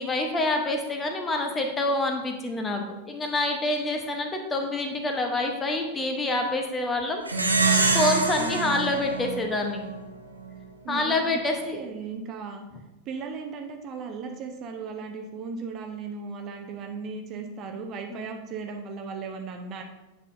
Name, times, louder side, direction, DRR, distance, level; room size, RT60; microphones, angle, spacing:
voice 1, 0.0-7.2 7.9-9.8 10.9-11.8 18.1-18.3, left 2 dB, 15° left, 4 dB, 0.9 m, -27 dB
Plucked string instrument, 7.3-10.1, right 4 dB, 80° right, 0.7 m, -25 dB
voice 2, 8.4-8.8 10.8-12.6 13.1-19.8, right 5 dB, 35° right, 4 dB, 0.7 m, -36 dB
8.3 x 5.8 x 2.6 m, 0.99 s
figure-of-eight pair, 90°, 0 cm